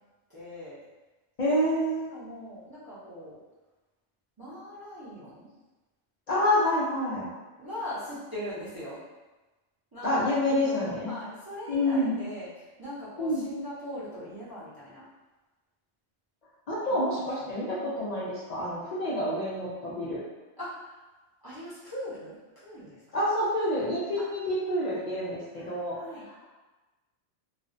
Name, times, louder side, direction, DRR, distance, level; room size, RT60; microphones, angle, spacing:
voice 1, 0.3-0.8 1.8-3.4 4.4-5.5 7.6-9.0 9.9-15.0 16.9-17.0 17.8-18.1 20.6-21.0 21.4-23.0 24.2-24.3 24.9-26.3, equal, 25° right, -11 dB, 0.5 m, -41 dB
voice 2, 1.4-2.1 6.3-7.3 10.0-11.1 11.7-12.1 13.2-13.4 16.7-20.2 23.1-26.0, left 1 dB, 60° left, -8 dB, 0.4 m, -27 dB
2.4 x 2.0 x 2.5 m, 1.2 s
omnidirectional pair, 1.2 m